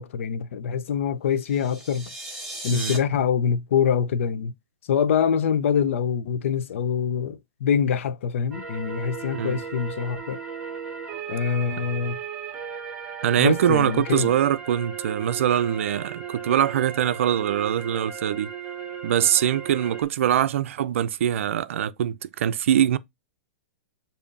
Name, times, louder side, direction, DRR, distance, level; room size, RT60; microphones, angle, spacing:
voice 1, 0.0-2.1 2.6-4.5 4.9-10.4 11.3-12.2 13.4-14.3, left 7 dB, 70° left, 0.6 m, -25 dB
sound 1, 1.4-3.0, right 1 dB, 5° right, 1.4 m, -36 dB
sound 2, 8.5-20.0, right 7 dB, 20° right, 1.2 m, -36 dB
voice 2, 13.2-18.5 19.0-23.0, right 10 dB, 70° right, 0.4 m, -23 dB
6.7 x 2.7 x 2.5 m
hypercardioid pair, 150°, 7 cm